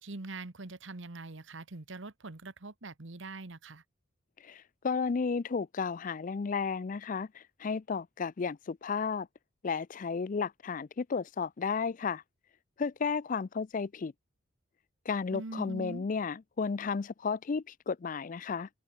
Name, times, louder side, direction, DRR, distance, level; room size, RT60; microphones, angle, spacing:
voice 1, 0.0-3.8 15.3-16.1, right 2 dB, 65° right, 1.3 m, -43 dB
voice 2, 4.4-9.3 9.6-12.2 12.8-14.1 15.1-18.7, left 5 dB, 40° left, 0.4 m, -33 dB
open air
head